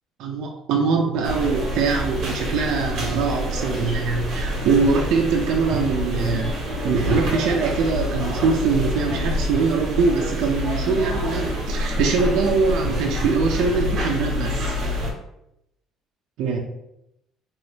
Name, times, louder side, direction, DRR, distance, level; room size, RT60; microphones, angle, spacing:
voice 1, 0.2-6.6 6.8-14.7 16.4-16.6, right 4 dB, 60° right, 1 dB, 0.4 m, -22 dB
sound 1, 1.2-15.1, equal, 40° right, 0.9 m, -26 dB
2.9 x 2.7 x 3.3 m, 0.83 s
cardioid pair, 175°, 0 cm